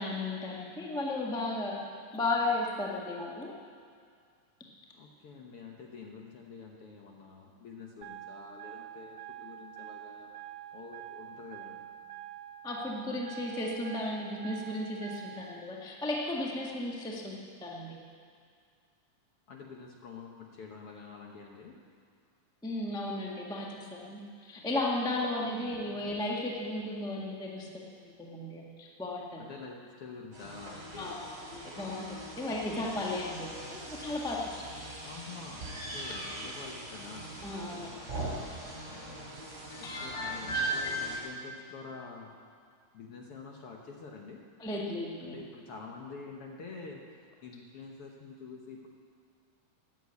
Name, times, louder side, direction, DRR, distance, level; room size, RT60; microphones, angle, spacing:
voice 1, 0.0-1.8 2.1-3.5 12.6-17.3 17.6-18.0 22.6-29.4 31.0-32.0 32.4-34.6 37.4-37.9 39.7-40.7 44.6-45.4, left 1 dB, 5° left, -2 dB, 0.3 m, -34 dB
voice 2, 4.9-10.4 10.7-11.8 19.5-21.7 25.7-26.1 29.4-31.2 35.0-37.3 39.7-42.3 42.9-44.4 45.2-47.0 47.4-48.9, left 4 dB, 60° left, 0 dB, 1.6 m, -47 dB
sound 1, 8.0-15.6, right 12 dB, 85° right, 2.4 m, -46 dB
sound 2, 30.3-41.2, right 1 dB, 20° right, 3.4 m, -42 dB
13.5 x 10.5 x 8.3 m, 2.2 s
omnidirectional pair, 3.8 m